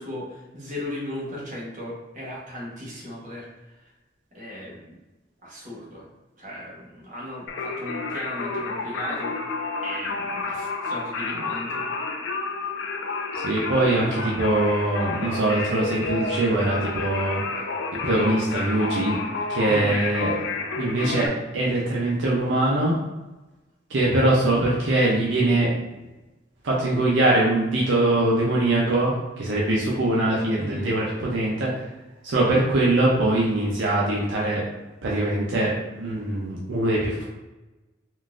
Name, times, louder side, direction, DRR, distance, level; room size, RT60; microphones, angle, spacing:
voice 1, 0.0-3.5 4.3-5.0 5.4-6.1 6.4-9.4 9.8-11.8 19.7-20.0 30.6-30.9, left 1 dB, 40° right, -5 dB, 1.0 m, -36 dB
Singing, 7.5-21.3, left 3 dB, 80° left, 0.5 m, -30 dB
voice 2, 13.4-17.4 18.0-19.2 19.5-20.3 20.8-22.9 23.9-25.7 26.6-31.7 32.2-34.6 35.0-37.3, right 2 dB, 75° right, -5 dB, 0.6 m, -22 dB
3.8 x 2.4 x 2.4 m, 1.1 s
head